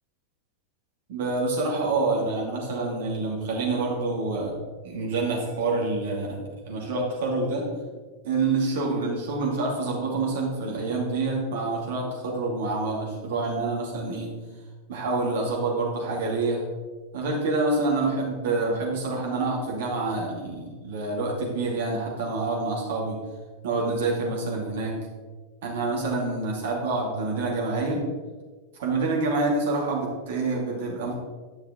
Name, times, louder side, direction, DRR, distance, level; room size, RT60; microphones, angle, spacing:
voice 1, 1.1-4.5 4.8-7.6 8.2-14.3 14.9-16.7 17.1-23.2 23.6-25.0 25.6-28.0 28.8-31.2, right 3 dB, 55° right, -2 dB, 2.6 m, -27 dB
10.5 x 6.5 x 3.9 m, 1.4 s
figure-of-eight pair, 90°, 0 cm